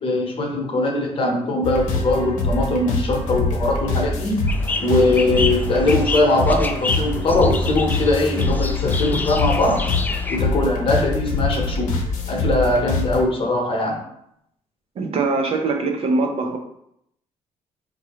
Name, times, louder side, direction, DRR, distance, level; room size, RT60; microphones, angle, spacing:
voice 1, 0.0-4.4 4.8-9.8 10.3-11.9 12.3-14.0, left 2 dB, 45° left, 0 dB, 0.9 m, -21 dB
sound 1, 1.6-13.2, left 3 dB, 75° left, 0.8 m, -24 dB
sound 2, 4.5-10.4, left 3 dB, 15° left, 0.3 m, -29 dB
voice 2, 15.0-16.6, right 3 dB, 50° right, 3 dB, 0.5 m, -22 dB
3.7 x 2.7 x 3.0 m, 0.76 s
cardioid pair, 105°, 13 cm